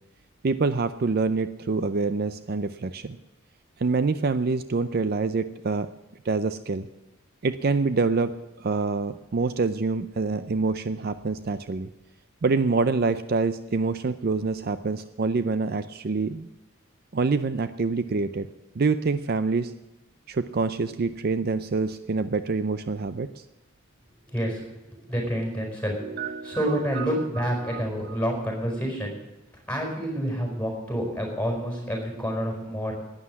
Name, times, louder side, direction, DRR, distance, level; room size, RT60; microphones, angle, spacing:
voice 1, 0.4-3.2 3.8-5.9 6.2-6.9 7.4-11.9 12.4-16.5 17.1-18.5 18.8-19.7 20.3-23.4 26.0-27.1 27.6-28.2, right 4 dB, 45° right, 12 dB, 0.5 m, -26 dB
voice 2, 24.3-25.9 26.4-29.2 29.7-32.9, equal, 5° left, 0 dB, 4.6 m, -28 dB
11.5 x 9.8 x 9.5 m, 1.0 s
head